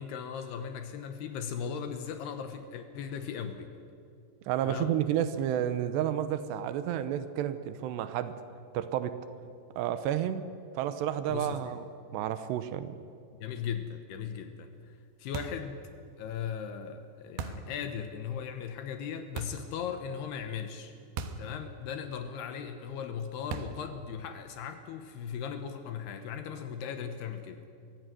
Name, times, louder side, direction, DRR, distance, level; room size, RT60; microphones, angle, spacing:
voice 1, 0.0-3.7 4.6-5.0 11.3-11.8 13.3-15.8 16.2-21.0 21.4-27.7, left 7 dB, 75° left, 7 dB, 3.0 m, -38 dB
voice 2, 4.5-8.4 8.7-9.2 9.8-10.5 10.7-11.9 12.1-12.9, right 10 dB, 85° right, 12 dB, 3.0 m, -31 dB
sound 1, 15.3-15.7 17.4-17.7 19.4-19.7 21.2-21.5 21.8-21.9 23.5-23.9, right 5 dB, 70° right, 2.8 m, -38 dB
23.0 x 16.0 x 9.3 m, 2.5 s
omnidirectional pair, 5.0 m